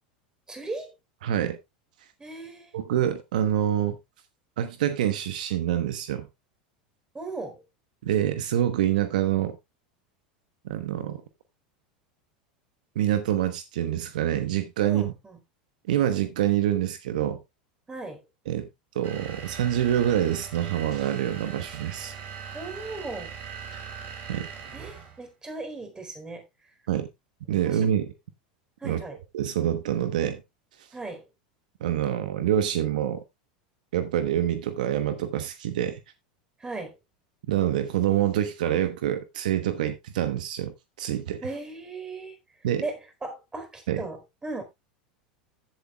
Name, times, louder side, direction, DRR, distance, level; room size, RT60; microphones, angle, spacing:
voice 1, 0.5-0.9 2.2-2.8 7.1-7.6 14.8-15.4 17.9-18.2 22.5-23.3 24.7-26.4 27.6-27.8 28.8-29.2 30.9-31.2 36.6-36.9 41.4-42.4 42.8-44.6, right 2 dB, 15° right, 4.0 m, -37 dB
voice 2, 1.2-1.6 2.7-4.0 4.6-6.3 8.0-9.6 10.6-11.2 12.9-15.1 15.9-17.4 18.5-18.7 18.9-22.1 23.7-23.8 24.3-24.5 26.9-27.1 27.5-28.1 28.8-29.0 29.3-30.4 31.8-33.2 33.9-36.0 37.5-41.4 42.6-42.8 43.9-44.0, right 11 dB, 75° right, 1.1 m, -26 dB
sound 1, 19.0-25.2, right 7 dB, 45° right, 4.3 m, -40 dB
15.0 x 7.5 x 2.3 m
hypercardioid pair, 95°, 4 cm